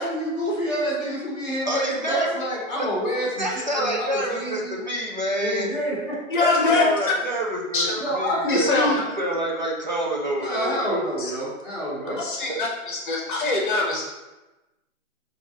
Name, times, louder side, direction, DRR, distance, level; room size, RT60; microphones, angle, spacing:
voice 1, 0.0-4.8 5.4-6.2 6.6-6.7 8.0-9.0 10.4-12.2, equal, 10° left, -13 dB, 1.2 m, -28 dB
voice 2, 1.7-2.4 2.8-2.9 3.4-5.7 6.4-11.1 12.0-12.2 12.5-12.6, right 1 dB, 35° right, -2 dB, 0.4 m, -27 dB
voice 3, 6.3-6.9 7.7-7.9 8.5-8.9 11.2-11.3 12.2-14.0, left 3 dB, 40° left, -2 dB, 0.9 m, -23 dB
5.3 x 2.5 x 2.9 m, 1.1 s
hypercardioid pair, 170°, 40 cm